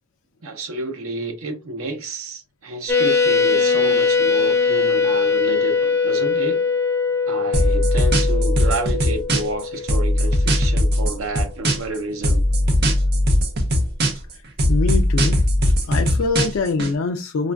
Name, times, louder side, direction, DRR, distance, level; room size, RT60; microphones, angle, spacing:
voice 1, 0.4-6.6 7.3-12.4, right 2 dB, 85° right, 0.7 m, -30 dB
sound 1, 2.9-10.9, left 5 dB, 15° left, 0.5 m, -21 dB
sound 2, 7.5-9.6 9.9-12.0 12.2-14.3 14.6-16.9, equal, 50° right, 0.7 m, -19 dB
voice 2, 14.7-15.4 15.9-17.5, left 4 dB, 70° left, 0.4 m, -23 dB
4.9 x 2.4 x 2.2 m
head